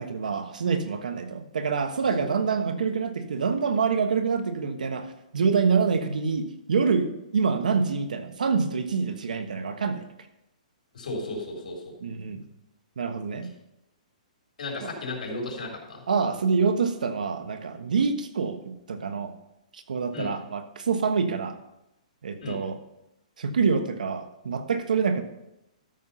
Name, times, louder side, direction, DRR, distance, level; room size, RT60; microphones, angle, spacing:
voice 1, 0.0-10.1 12.0-12.4 13.0-13.5 14.8-14.9 16.1-19.3 19.7-21.6 22.2-22.8 23.4-25.2, right 5 dB, 90° right, 8 dB, 1.3 m, -26 dB
voice 2, 10.9-11.9 14.6-16.0 20.1-20.3 22.4-22.6, left 2 dB, 80° left, 1 dB, 3.8 m, -34 dB
13.0 x 5.8 x 5.6 m, 0.87 s
hypercardioid pair, 160°, 4 cm